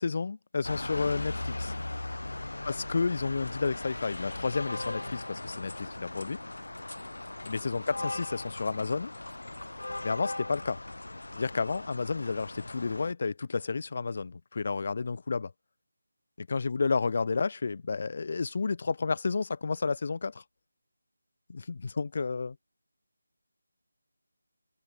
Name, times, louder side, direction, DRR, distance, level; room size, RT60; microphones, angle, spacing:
voice 1, 0.0-1.7 2.7-6.4 7.5-9.1 10.0-10.8 11.4-15.5 16.4-20.4 21.5-22.6, left 4 dB, 45° left, 2.1 m, -31 dB
sound 1, 0.6-13.1, left 2 dB, 90° left, 2.9 m, -38 dB
figure-of-eight pair, 170°, 0 cm